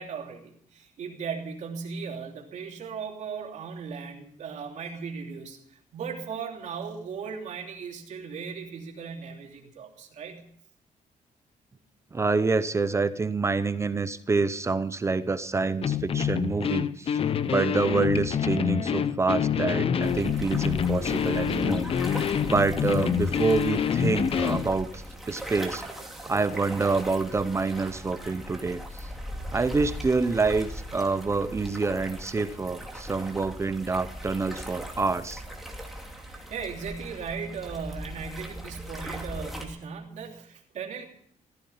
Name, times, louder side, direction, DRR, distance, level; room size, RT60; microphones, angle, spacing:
voice 1, 0.0-10.4 36.3-41.1, right 6 dB, 60° right, 1 dB, 3.0 m, -37 dB
voice 2, 12.1-17.2 17.5-25.8 26.2-29.1 29.5-35.4, right 4 dB, 20° right, 13 dB, 0.6 m, -27 dB
sound 1, 15.8-24.7, left 8 dB, 45° left, 0.7 m, -26 dB
sound 2, 20.0-39.7, equal, ahead, 2.6 m, -39 dB
15.5 x 15.0 x 5.6 m, 0.66 s
cardioid pair, 155°, 14 cm